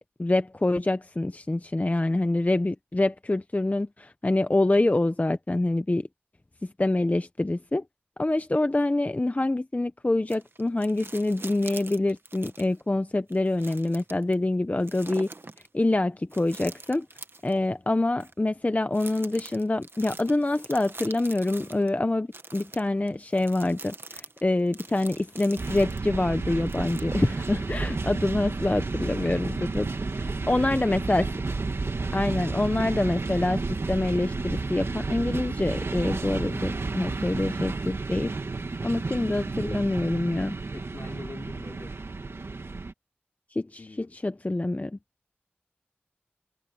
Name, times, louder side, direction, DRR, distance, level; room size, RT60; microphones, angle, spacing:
voice 1, 0.2-6.1 6.6-7.8 8.2-15.3 15.7-17.1 17.4-29.9 30.2-31.3 32.1-33.6 33.9-38.3 38.8-40.5 43.5-43.8 44.2-45.0, left 2 dB, 35° left, 0.8 m, -26 dB
sound 1, 10.3-12.8 13.3-14.3 14.8-15.7 16.3-17.6 18.2-18.3 18.9-21.9 22.3-26.0 26.7-27.4 27.9-28.0, right 3 dB, 65° right, 1.5 m, -44 dB
sound 2, 25.6-42.9, right 3 dB, 85° right, 2.2 m, -31 dB
voice 2, 30.2-31.0 37.4-37.7 40.7-42.0 43.8-44.2, left 3 dB, 70° left, 3.8 m, -44 dB
wide cardioid pair, 45°, 4 cm